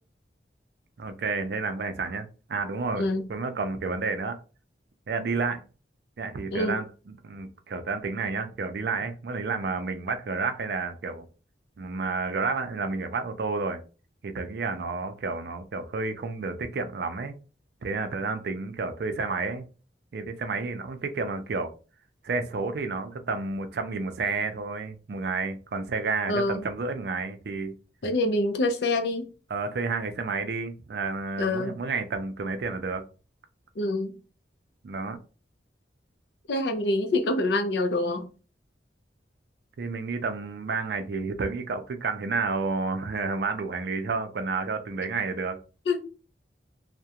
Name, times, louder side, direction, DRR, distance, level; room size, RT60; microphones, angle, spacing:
voice 1, 1.0-4.4 5.1-5.6 6.2-11.3 11.8-13.8 14.2-17.4 17.8-19.7 20.1-21.7 22.2-27.7 29.5-33.0 34.8-35.2 39.8-45.6, right 4 dB, 65° right, 0.4 m, -30 dB
voice 2, 3.0-3.3 6.5-6.8 26.3-26.6 28.0-29.3 31.4-31.8 33.8-34.1 36.5-38.3 45.9-46.0, left 2 dB, 70° left, 0.5 m, -26 dB
2.3 x 2.1 x 2.7 m
head